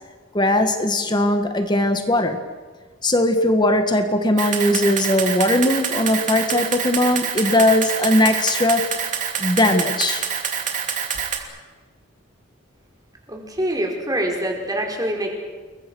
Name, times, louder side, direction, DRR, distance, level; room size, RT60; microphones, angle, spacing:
voice 1, 0.3-2.4 3.0-8.9 9.4-10.3, left 1 dB, 20° left, 1.8 m, -19 dB
Camera, 4.4-11.4, right 8 dB, 40° right, 3.0 m, -26 dB
voice 2, 13.3-15.3, right 1 dB, 20° right, 4.8 m, -25 dB
29.5 x 22.0 x 6.4 m
head